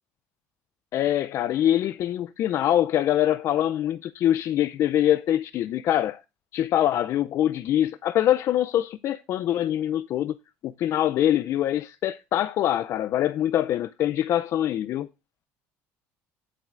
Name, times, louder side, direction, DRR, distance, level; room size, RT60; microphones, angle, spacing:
voice 1, 0.9-6.2 6.5-10.3 10.6-15.1, left 11 dB, 55° left, 0.4 m, -24 dB
18.0 x 7.5 x 2.5 m
supercardioid pair, 100°, 6 cm